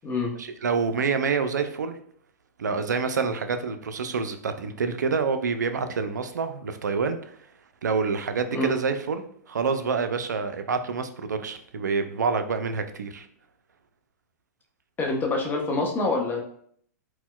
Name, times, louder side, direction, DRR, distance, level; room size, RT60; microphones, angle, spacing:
voice 1, 0.4-2.0 2.6-7.2 7.8-13.3, right 5 dB, 85° right, 9 dB, 0.4 m, -27 dB
voice 2, 15.0-16.4, left 2 dB, 20° left, 1 dB, 0.7 m, -26 dB
4.2 x 2.1 x 2.2 m, 0.62 s
hypercardioid pair, 110°, 9 cm